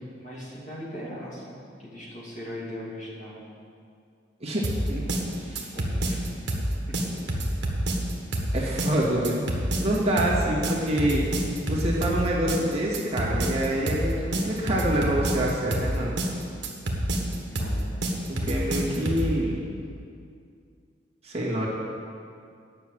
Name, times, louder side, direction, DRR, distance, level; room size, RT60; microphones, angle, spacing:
voice 1, 0.2-3.4 5.7-6.3 6.9-7.3 17.1-17.9, equal, 45° left, -6 dB, 2.7 m, -40 dB
voice 2, 4.4-5.1 5.3-5.7 8.5-9.4 9.8-11.3 11.7-16.1 18.3-19.8 21.2-21.7, right 1 dB, 35° right, -5 dB, 1.9 m, -26 dB
sound 1, 4.6-19.3, right 1 dB, 75° right, 1.5 m, -27 dB
9.7 x 6.1 x 7.9 m, 2.3 s
head